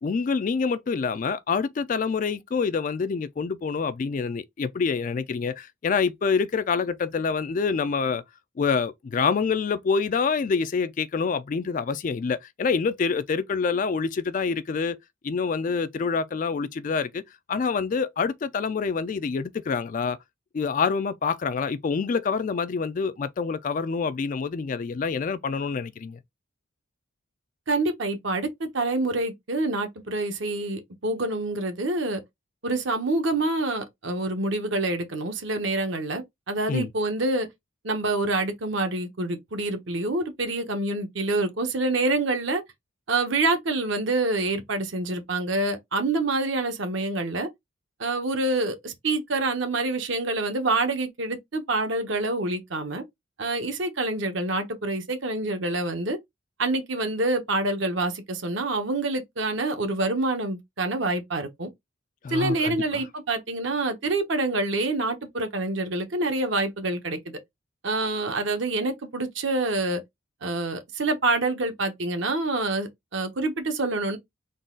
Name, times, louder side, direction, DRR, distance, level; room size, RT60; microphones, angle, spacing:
voice 1, 0.0-8.2 8.6-15.0 15.2-17.2 17.5-20.2 20.5-26.2 36.7-36.9 62.2-63.0, left 5 dB, 40° left, 0.3 m, -26 dB
voice 2, 27.7-32.2 32.6-37.5 37.8-42.6 43.1-47.5 48.0-53.0 53.4-56.2 56.6-61.7 62.3-67.4 67.8-70.0 70.4-74.2, right 2 dB, 60° right, 0.9 m, -27 dB
3.9 x 2.3 x 3.7 m
head